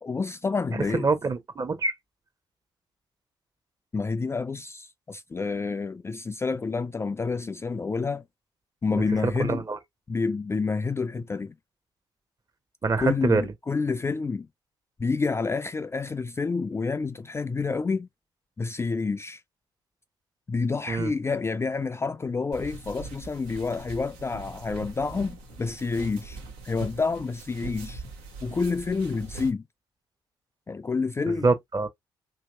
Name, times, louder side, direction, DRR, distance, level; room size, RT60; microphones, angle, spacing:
voice 1, 0.0-1.1 3.9-8.2 8.8-9.6 10.1-11.5 13.0-14.5 15.0-18.1 18.6-19.4 20.5-26.4 26.6-28.0 28.4-29.6 30.7-31.5, left 4 dB, 20° left, 0.3 m, -28 dB
voice 2, 0.9-1.9 8.9-9.8 12.8-13.5 20.9-21.1 31.3-31.9, right 3 dB, 30° right, 0.9 m, -25 dB
sound 1, 22.5-29.5, right 3 dB, 80° right, 0.9 m, -42 dB
2.9 x 2.8 x 2.4 m
hypercardioid pair, 45°, 12 cm